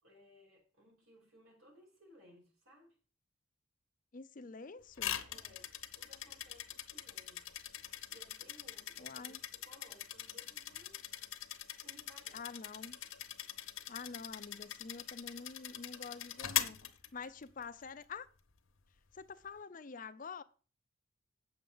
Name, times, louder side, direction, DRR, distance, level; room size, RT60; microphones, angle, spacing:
voice 1, 0.0-3.0 5.3-7.5 8.1-11.0 11.8-12.5, equal, 80° right, 5.2 m, -62 dB
voice 2, 4.1-5.2 9.0-9.4 12.3-13.0 13.9-16.8 17.1-18.3 19.1-20.4, left 5 dB, 40° left, 0.5 m, -47 dB
sound 1, 5.0-17.6, left 11 dB, 75° left, 1.0 m, -42 dB
8.7 x 7.0 x 5.4 m
head